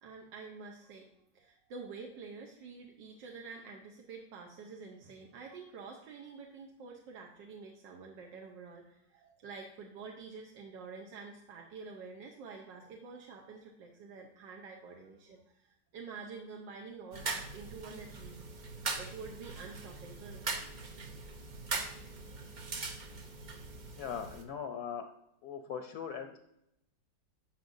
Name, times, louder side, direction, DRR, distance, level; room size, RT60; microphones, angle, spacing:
voice 1, 0.0-18.4 19.0-20.4, right 4 dB, 80° right, 1 dB, 1.5 m, -48 dB
sound 1, 17.1-24.4, right 3 dB, 65° right, 0.4 m, -41 dB
voice 2, 23.9-25.1 25.4-26.4, left 7 dB, 70° left, 6 dB, 1.0 m, -40 dB
10.0 x 5.8 x 2.6 m, 0.80 s
omnidirectional pair, 1.9 m